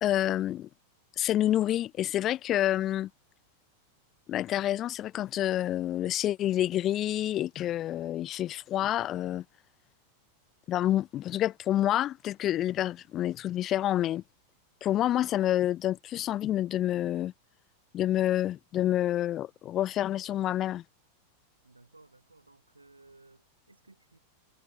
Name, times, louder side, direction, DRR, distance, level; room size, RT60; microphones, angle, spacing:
voice 1, 0.0-0.7 1.2-3.1 4.3-9.4 10.7-14.2 14.8-17.3 17.9-20.8, left 12 dB, 30° left, 0.3 m, -28 dB
voice 2, 21.6-24.2, right 2 dB, 80° right, 3.1 m, -58 dB
figure-of-eight pair, 90°, 0 cm